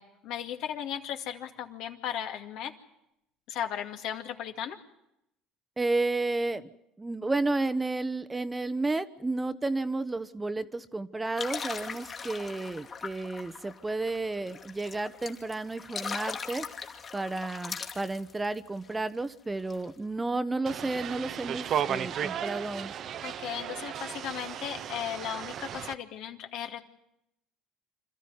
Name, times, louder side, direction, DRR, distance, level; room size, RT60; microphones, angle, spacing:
voice 1, 0.0-2.7 3.5-4.8 23.2-26.8, left 9 dB, 65° left, 5 dB, 2.2 m, -36 dB
voice 2, 5.8-6.7 7.0-16.7 17.1-22.9, right 2 dB, 15° right, 13 dB, 1.1 m, -32 dB
sound 1, 11.4-18.9 19.3-19.4 19.6-19.9, left 5 dB, 40° left, 2.3 m, -40 dB
sound 2, 20.7-25.9, right 9 dB, 50° right, 0.9 m, -35 dB
26.5 x 14.0 x 9.7 m, 0.85 s
hypercardioid pair, 75°, 0 cm